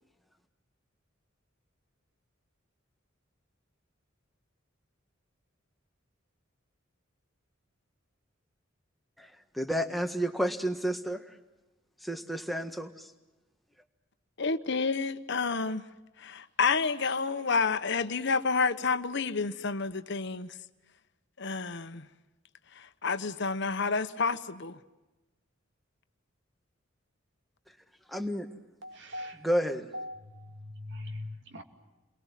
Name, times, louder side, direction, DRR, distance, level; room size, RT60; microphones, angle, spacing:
voice 1, 9.2-11.4 12.0-13.1 28.1-28.5 29.4-29.9, equal, ahead, 5 dB, 1.6 m, -31 dB
voice 2, 14.4-15.8 16.2-20.5 21.4-22.1 23.0-24.8, left 4 dB, 60° left, 10 dB, 1.1 m, -29 dB
voice 3, 28.8-29.4 29.9-31.6, left 1 dB, 60° right, 5 dB, 2.6 m, -41 dB
30.0 x 23.0 x 7.5 m, 1.1 s
head